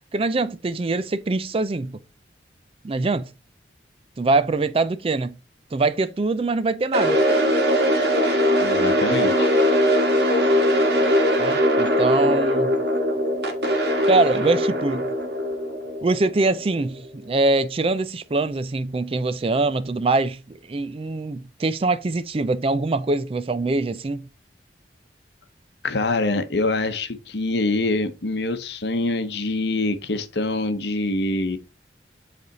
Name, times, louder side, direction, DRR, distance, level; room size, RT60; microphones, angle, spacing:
voice 1, 0.1-2.0 2.8-3.3 4.2-5.4 5.7-7.2 11.4-12.8 14.1-15.1 16.0-24.3, right 3 dB, 30° right, 0.4 m, -23 dB
sound 1, 6.9-17.0, equal, 65° right, 1.6 m, -21 dB
voice 2, 8.6-9.5 25.8-31.6, left 2 dB, 70° left, 0.9 m, -25 dB
8.0 x 3.5 x 3.9 m
head